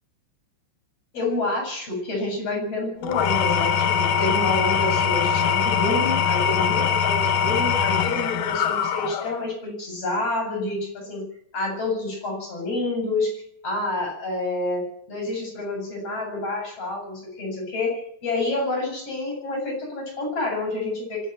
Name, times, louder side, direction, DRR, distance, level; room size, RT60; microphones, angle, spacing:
voice 1, 1.1-11.3 11.5-21.2, left 2 dB, 30° left, 2 dB, 8.9 m, -28 dB
Engine / Tools, 3.0-9.5, left 7 dB, 65° left, 2.1 m, -22 dB
25.0 x 14.0 x 7.7 m, 0.68 s
omnidirectional pair, 5.4 m